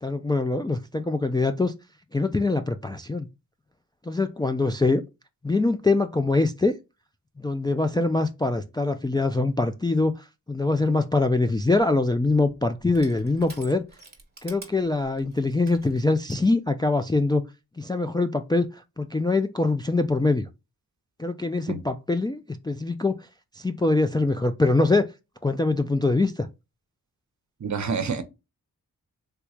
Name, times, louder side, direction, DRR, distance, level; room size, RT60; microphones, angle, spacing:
voice 1, 0.0-1.7 2.1-3.3 4.1-5.0 5.4-6.7 7.4-10.1 10.5-13.8 14.4-17.4 17.8-20.5 21.2-23.2 23.6-25.1 25.4-26.5, left 3 dB, 15° left, 0.3 m, -23 dB
Crushing, 11.6-16.4, right 3 dB, 25° right, 1.1 m, -49 dB
voice 2, 27.6-28.2, right 5 dB, 50° right, 0.7 m, -27 dB
3.4 x 3.0 x 2.3 m
cardioid pair, 70°, 36 cm